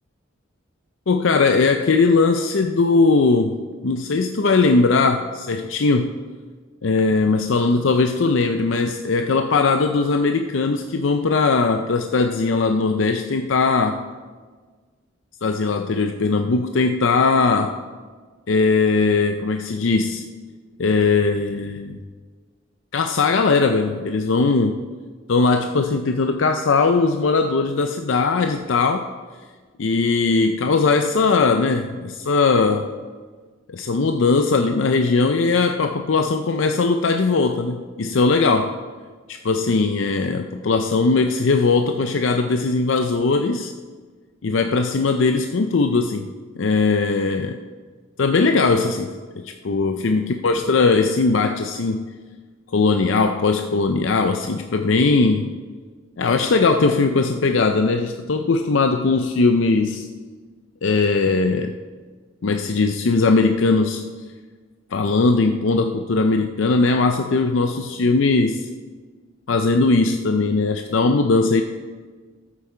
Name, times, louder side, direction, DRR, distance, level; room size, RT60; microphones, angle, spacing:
voice 1, 1.1-6.1 6.8-14.0 15.4-17.8 18.5-20.2 20.8-22.0 22.9-24.8 25.3-29.1 29.8-32.9 33.7-38.8 39.3-43.7 44.4-47.6 48.2-52.1 52.7-55.5 56.2-60.1 60.8-61.8 62.4-64.1 64.9-68.7 69.5-71.6, left 3 dB, 70° left, 7 dB, 0.5 m, -19 dB
14.0 x 8.7 x 4.4 m, 1.5 s
head